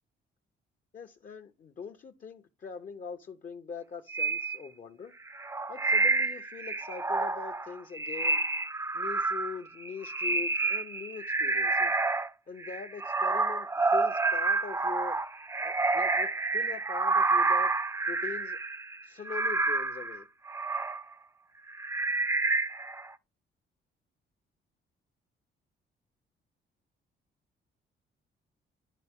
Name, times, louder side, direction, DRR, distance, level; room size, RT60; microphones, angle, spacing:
voice 1, 0.9-5.1 5.7-8.4 8.9-11.9 12.5-15.2 15.6-17.7 18.1-18.6 19.0-20.3, left 6 dB, 40° left, 0.6 m, -42 dB
sound 1, 4.1-4.6 5.3-12.3 12.6-21.0 21.7-23.1, right 3 dB, 15° right, 0.4 m, -29 dB
11.0 x 4.0 x 3.5 m
cardioid pair, 90°, 20 cm